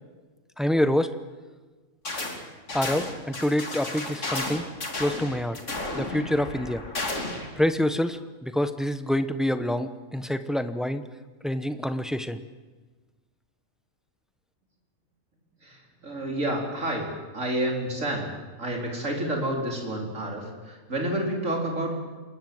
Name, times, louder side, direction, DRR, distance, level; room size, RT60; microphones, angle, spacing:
voice 1, 0.6-1.1 2.7-4.6 5.0-5.6 5.9-6.8 7.6-11.0 11.4-12.4, left 1 dB, ahead, 10 dB, 0.8 m, -26 dB
sound 1, 2.0-2.4 2.7-7.5, left 2 dB, 55° left, 3.2 m, -33 dB
voice 2, 15.6-17.1 17.3-22.0, right 1 dB, 60° right, 0 dB, 4.8 m, -29 dB
27.5 x 21.0 x 7.9 m, 1.3 s
omnidirectional pair, 1.5 m